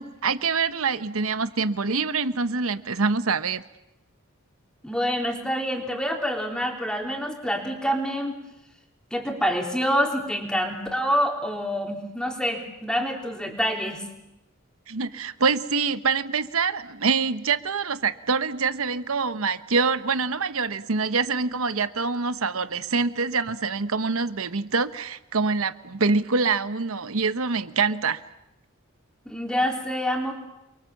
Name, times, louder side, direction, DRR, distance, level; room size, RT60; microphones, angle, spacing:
voice 1, 0.0-3.6 14.9-28.2, right 4 dB, 75° right, 12 dB, 1.0 m, -25 dB
voice 2, 4.8-8.4 9.1-14.0 29.3-30.3, equal, 5° left, 1 dB, 3.6 m, -26 dB
29.0 x 23.0 x 7.3 m, 0.88 s
head